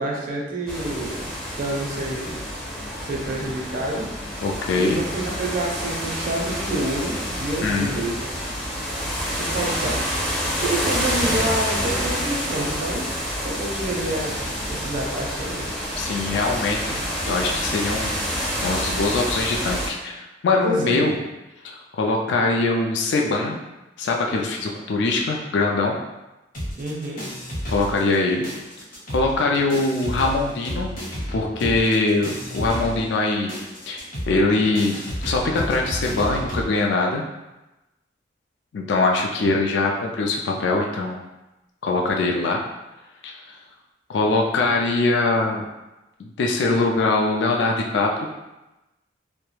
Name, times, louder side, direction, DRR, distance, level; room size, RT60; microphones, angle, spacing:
voice 1, 0.0-2.4 2.9-4.4 4.8-8.6 9.4-13.1 13.4-15.7 20.5-21.2 26.8-27.2, right 1 dB, 50° right, -1 dB, 0.5 m, -28 dB
sound 1, 0.7-19.9, equal, 5° left, 0.4 m, -28 dB
voice 2, 4.4-5.0 7.6-8.0 16.0-18.3 18.6-21.2 21.6-23.6 24.0-26.0 27.7-28.5 29.1-30.9 31.3-33.5 33.9-35.0 35.2-37.2 38.7-41.3 41.8-42.6 43.2-43.5 44.1-45.6 46.2-48.3, left 3 dB, 70° left, 0 dB, 0.3 m, -22 dB
sound 2, 26.5-28.2 28.4-36.7, equal, 50° left, 0.8 m, -32 dB
2.3 x 2.1 x 3.0 m, 1.0 s
head